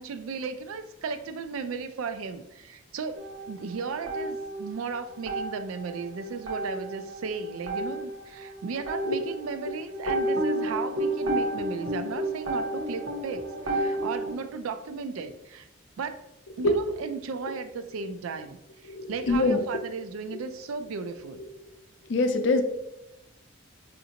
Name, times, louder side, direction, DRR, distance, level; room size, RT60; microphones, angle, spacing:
voice 1, 0.0-3.2 3.5-15.7 16.0-16.2 16.6-21.4, right 5 dB, 85° right, 10 dB, 0.4 m, -35 dB
sound 1, 3.2-4.9 5.2-14.3, right 1 dB, 65° right, 0.9 m, -31 dB
voice 2, 18.8-19.6 21.4-21.5 22.1-22.6, left 2 dB, 60° left, 7 dB, 0.4 m, -24 dB
5.0 x 2.5 x 2.8 m, 0.89 s
head